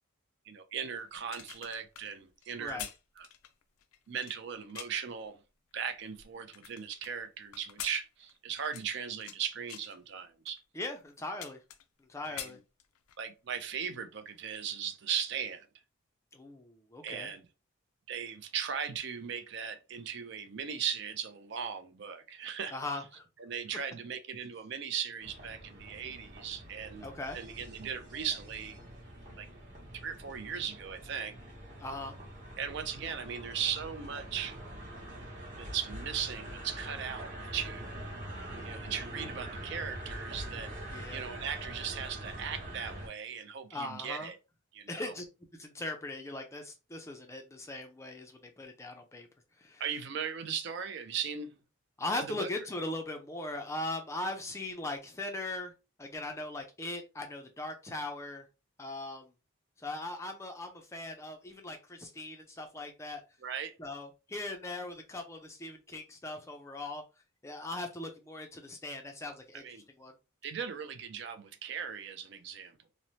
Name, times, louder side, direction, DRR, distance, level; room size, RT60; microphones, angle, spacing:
voice 1, 0.5-2.9 3.2-3.3 4.1-5.4 5.7-10.6 12.3-12.6 13.2-15.7 17.0-17.5 18.1-22.8 23.4-27.1 27.3-28.8 29.4-29.5 29.9-31.4 32.6-34.6 35.5-37.9 38.6-40.7 41.1-44.4 44.7-45.1 49.8-51.6 52.1-52.5 63.4-63.7 69.5-69.8 70.4-72.8, right 7 dB, 55° right, 0.4 m, -38 dB
sound 1, 1.1-5.1 5.7-7.1 7.5-9.4 9.7-10.0 10.6-10.7 11.0-12.0 12.2-13.2 13.6-13.8, left 10 dB, 90° left, 0.4 m, -46 dB
voice 2, 10.7-11.6 12.1-12.6 16.3-17.3 22.7-23.2 27.0-27.4 31.8-32.1 40.9-41.2 43.7-44.3 44.9-45.3 45.6-49.3 49.6-49.8 52.0-55.7 56.0-58.4 58.8-59.3 59.8-63.2 63.8-67.0 67.4-70.1, left 2 dB, 15° left, 0.3 m, -39 dB
sound 2, 25.2-43.1, right 1 dB, 35° right, 0.9 m, -44 dB
3.0 x 2.0 x 2.7 m
head